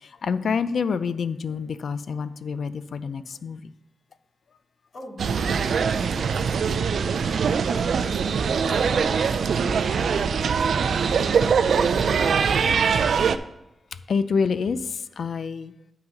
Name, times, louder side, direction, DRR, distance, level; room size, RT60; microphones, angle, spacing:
voice 1, 0.0-3.7 14.1-15.7, left 5 dB, 70° left, 13 dB, 0.4 m, -27 dB
voice 2, 4.9-5.8 6.1-7.5 8.3-11.2, left 1 dB, 50° left, -2 dB, 2.6 m, -42 dB
sound 1, 5.2-13.4, right 6 dB, 75° right, 0.4 m, -22 dB
8.7 x 4.0 x 6.5 m, 0.91 s
wide cardioid pair, 100°, 0 cm